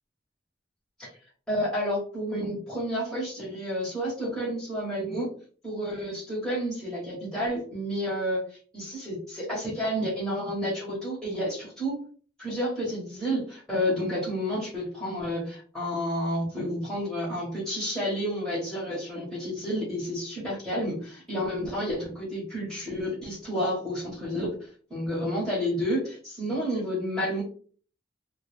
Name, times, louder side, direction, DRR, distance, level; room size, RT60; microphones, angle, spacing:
voice 1, 1.5-5.3 5.6-12.1 12.4-27.4, equal, 5° left, -8 dB, 1.0 m, -30 dB
2.3 x 2.2 x 3.1 m, 0.42 s
head